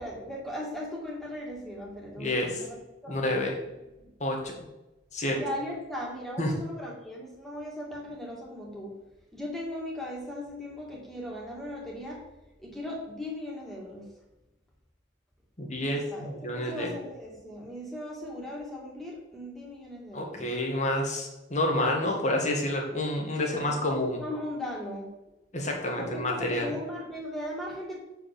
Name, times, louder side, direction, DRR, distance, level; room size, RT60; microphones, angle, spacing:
voice 1, 0.0-2.8 3.0-3.5 4.0-4.1 5.3-8.9 9.3-12.2 12.6-14.1 15.8-20.5 23.4-25.1 26.0-28.0, left 1 dB, ahead, -3 dB, 2.2 m, -38 dB
voice 2, 2.2-2.6 3.1-3.5 4.2-4.6 5.1-5.4 6.4-6.6 15.6-16.9 20.1-24.2 25.5-26.7, left 1 dB, 40° left, 1 dB, 1.8 m, -29 dB
7.3 x 5.0 x 7.1 m, 0.98 s
head